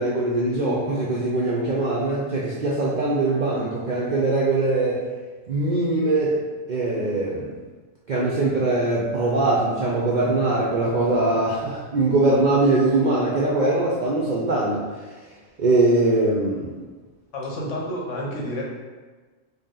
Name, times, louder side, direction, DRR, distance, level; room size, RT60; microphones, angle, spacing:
voice 1, 0.0-5.1 5.5-6.4 6.7-7.5 8.1-16.7, right 2 dB, 60° right, -5 dB, 0.5 m, -22 dB
voice 2, 17.3-18.6, left 1 dB, 75° left, -3 dB, 1.1 m, -30 dB
2.9 x 2.8 x 3.7 m, 1.4 s
omnidirectional pair, 1.3 m